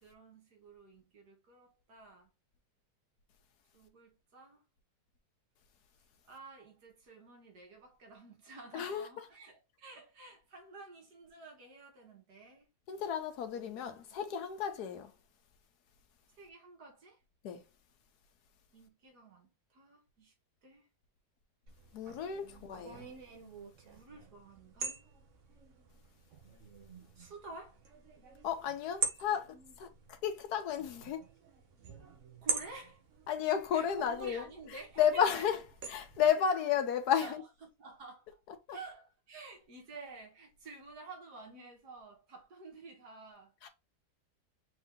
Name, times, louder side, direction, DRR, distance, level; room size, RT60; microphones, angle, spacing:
voice 1, 0.0-2.3 3.7-4.6 6.2-12.7 13.5-14.2 16.3-17.2 18.7-20.3 20.6-20.9 22.4-23.1 23.9-25.0 27.2-27.8 32.4-33.0 33.7-35.4 37.2-38.4 38.7-43.7, right 3 dB, 75° right, 2.0 m, -51 dB
voice 2, 8.7-9.1 12.9-15.1 17.4-17.6 21.9-23.1 28.4-31.2 33.3-34.4 35.0-35.6 35.9-37.4 38.7-38.8 43.6-43.7, left 8 dB, 80° left, 1.3 m, -32 dB
sound 1, 21.7-36.3, right 5 dB, 55° right, 1.1 m, -44 dB
4.2 x 2.8 x 3.5 m
omnidirectional pair, 1.7 m